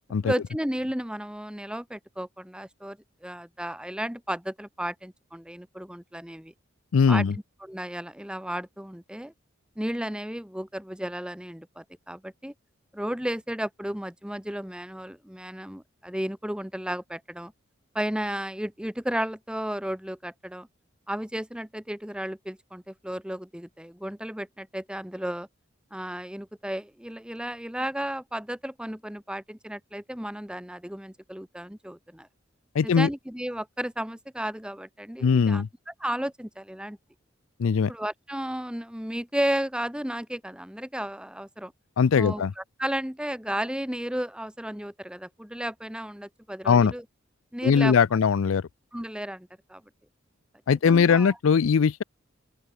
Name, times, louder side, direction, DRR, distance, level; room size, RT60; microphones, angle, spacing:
voice 1, 0.2-6.5 7.1-7.2 7.6-9.3 9.8-12.5 12.9-17.5 17.9-20.7 21.1-25.5 25.9-32.3 32.8-35.6 36.0-37.0 37.9-41.7 42.2-47.0 47.5-48.0 48.9-49.8 50.8-51.3, equal, 5° right, 1.5 m, -33 dB
voice 2, 6.9-7.4 32.7-33.1 35.2-35.7 37.6-37.9 42.0-42.5 46.6-46.9 47.6-48.7 50.7-52.0, left 6 dB, 85° left, 0.4 m, -20 dB
open air
head